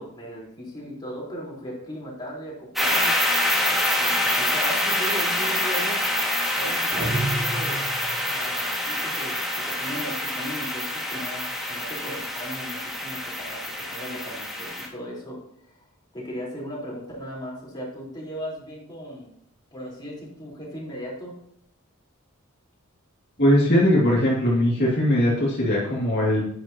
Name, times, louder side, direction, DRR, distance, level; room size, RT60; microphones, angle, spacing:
voice 1, 0.0-3.2 4.0-6.0 6.5-7.9 8.3-13.2 13.4-13.6 13.9-15.4 15.6-15.8 16.1-19.3 19.7-21.3, equal, 20° left, -5 dB, 3.9 m, -37 dB
sound 1, 2.8-14.9, left 1 dB, ahead, 1.9 m, -26 dB
sound 2, 6.9-8.4, right 2 dB, 20° right, 3.1 m, -29 dB
voice 2, 23.4-26.4, equal, 50° left, -5 dB, 2.3 m, -20 dB
10.5 x 9.8 x 2.9 m, 0.73 s
head